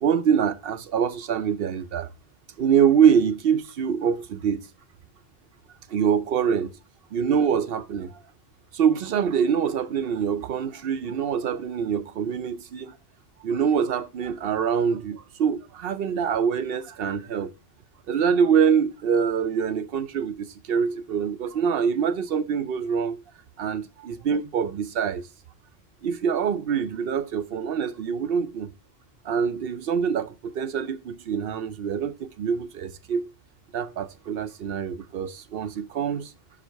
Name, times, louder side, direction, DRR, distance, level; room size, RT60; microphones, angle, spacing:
voice 1, 0.0-2.1 2.6-4.7 5.9-6.7 7.1-8.2 8.7-12.9 13.4-17.5 18.1-23.2 23.6-25.2 26.0-28.7 29.2-33.3 33.7-36.3, right 7 dB, 65° right, 0.7 m, -25 dB
5.1 x 4.9 x 4.5 m
omnidirectional pair, 1.1 m